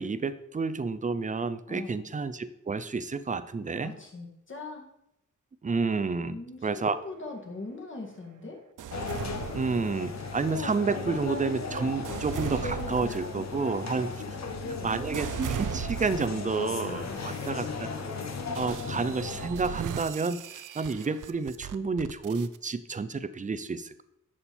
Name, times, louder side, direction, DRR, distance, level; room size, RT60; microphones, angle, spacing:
voice 1, 0.0-3.9 5.6-6.4 6.6-7.0 9.5-14.1 14.8-18.1 18.5-24.0, right 4 dB, 25° right, 14 dB, 0.5 m, -30 dB
voice 2, 1.7-2.0 3.8-4.8 6.2-8.6 13.1-13.2 13.5-13.6 14.3-15.0 17.1-17.5, left 2 dB, 40° left, 0 dB, 2.2 m, -42 dB
sound 1, 8.8-10.4 11.0-16.5 17.1-17.5 18.5-22.6, right 9 dB, 75° right, 0.6 m, -39 dB
sound 2, 8.9-19.5, left 4 dB, 55° left, 1.2 m, -36 dB
11.0 x 7.3 x 4.3 m, 0.82 s
wide cardioid pair, 155°, 31 cm